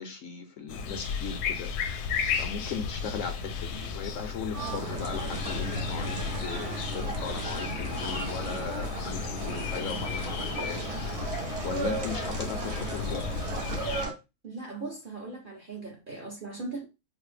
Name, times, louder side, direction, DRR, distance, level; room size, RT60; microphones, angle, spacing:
voice 1, 0.0-13.5, left 6 dB, 70° left, 0.8 m, -38 dB
sound 1, 0.7-14.1, left 6 dB, 85° left, 1.1 m, -34 dB
sound 2, 4.5-14.1, right 3 dB, 75° right, 0.3 m, -36 dB
voice 2, 14.4-16.8, right 3 dB, 45° right, 0.7 m, -39 dB
4.0 x 2.0 x 3.2 m
omnidirectional pair, 1.6 m